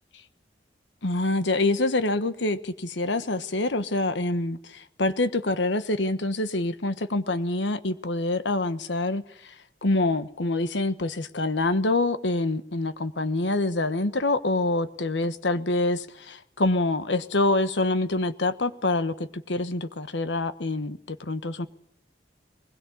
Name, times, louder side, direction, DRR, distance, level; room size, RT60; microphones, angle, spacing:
voice 1, 1.0-9.2 9.8-21.7, left 2 dB, 85° left, 1.3 m, -26 dB
21.5 x 21.0 x 8.5 m
head